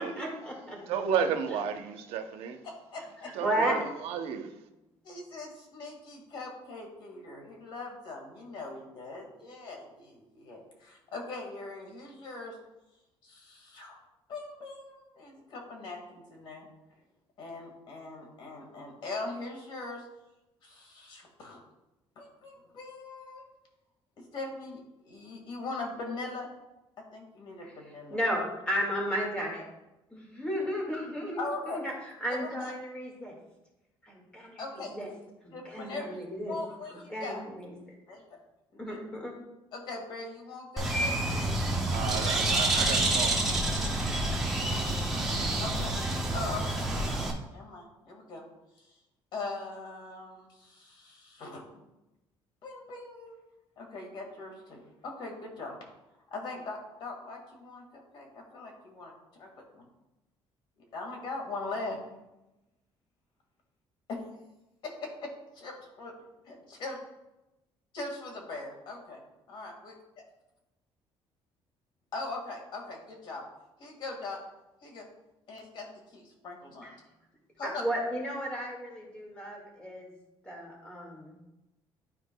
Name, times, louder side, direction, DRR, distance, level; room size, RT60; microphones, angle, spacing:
voice 1, 0.0-0.8 3.4-3.8 27.6-27.7 28.1-29.7 30.1-31.4 31.7-31.9 32.2-33.3 34.0-35.1 35.4-36.5 37.1-37.9 38.8-39.3 76.8-76.9 77.6-80.1 80.4-81.4, equal, 10° left, 1.9 m, -34 dB
voice 2, 0.9-2.6 3.3-4.5 41.9-43.7, right 7 dB, 85° right, 0.7 m, -33 dB
voice 3, 2.6-3.3 5.0-12.6 13.2-14.0 14.3-16.7 17.4-20.1 20.6-21.6 22.2-23.4 24.2-26.5 27.1-28.2 31.4-31.8 32.3-32.7 34.6-34.9 35.5-37.4 38.1-38.4 38.7-39.0 39.7-41.5 42.2-43.1 45.6-45.9 46.3-48.4 48.8-49.0 49.3-51.8 52.6-53.4 53.8-55.8 56.3-59.1 59.4-59.9 60.9-62.0 64.1-64.2 64.8-66.1 66.4-67.0 67.9-69.2 69.5-69.9 72.1-73.4 73.8-74.4 74.8-75.1 75.5-76.9 77.6-77.8, left 3 dB, 55° left, 1.8 m, -41 dB
Bird, 40.8-47.3, right 2 dB, 5° right, 0.9 m, -28 dB
11.5 x 4.6 x 2.2 m
cardioid pair, 165°, 10 cm